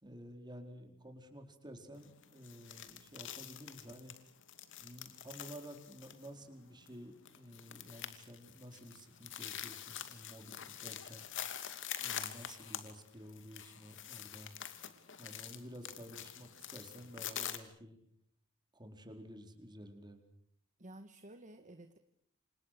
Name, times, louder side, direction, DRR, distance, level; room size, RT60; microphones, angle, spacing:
voice 1, 0.0-4.1 4.8-11.3 12.0-14.5 15.2-18.0 18.7-20.2, equal, 20° right, 5 dB, 4.4 m, -52 dB
sound 1, 2.0-17.6, left 10 dB, 60° left, 2.6 m, -46 dB
voice 2, 20.8-22.0, right 1 dB, 35° right, 8 dB, 1.6 m, -53 dB
29.5 x 26.5 x 6.7 m, 0.66 s
head